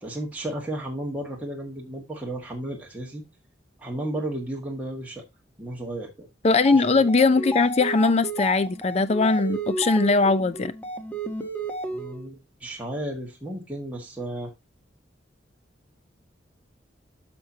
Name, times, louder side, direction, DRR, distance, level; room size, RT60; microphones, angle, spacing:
voice 1, 0.0-3.2 3.8-5.2 5.6-6.3 6.7-6.8 11.9-14.5, right 1 dB, 10° right, 1.6 m, -33 dB
voice 2, 6.4-10.7, left 3 dB, 35° left, 0.5 m, -20 dB
sound 1, 6.5-12.3, right 2 dB, 10° left, 1.1 m, -32 dB
9.3 x 6.1 x 2.7 m
head